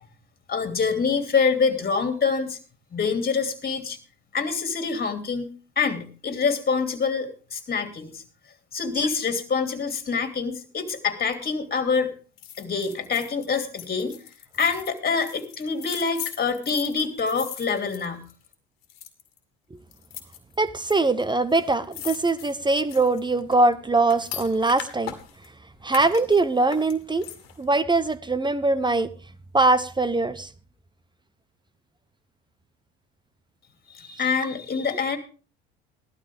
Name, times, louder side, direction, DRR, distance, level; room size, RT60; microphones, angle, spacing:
voice 1, 0.5-2.6 2.9-4.0 4.3-5.5 5.8-8.2 8.7-12.1 12.6-14.2 14.6-18.2 33.9-35.2, left 5 dB, 30° left, 7 dB, 2.8 m, -26 dB
sound 1, 12.4-18.5 18.8-19.4 19.9-20.9 21.2-21.3 21.5-25.5 25.9-27.6 28.0-28.1, left 11 dB, 90° left, 2.0 m, -40 dB
voice 2, 20.6-25.1 25.8-27.3 27.6-29.1 29.5-30.5, right 3 dB, 15° right, 15 dB, 0.9 m, -22 dB
16.0 x 12.5 x 3.6 m, 0.37 s
hypercardioid pair, 70°, 29 cm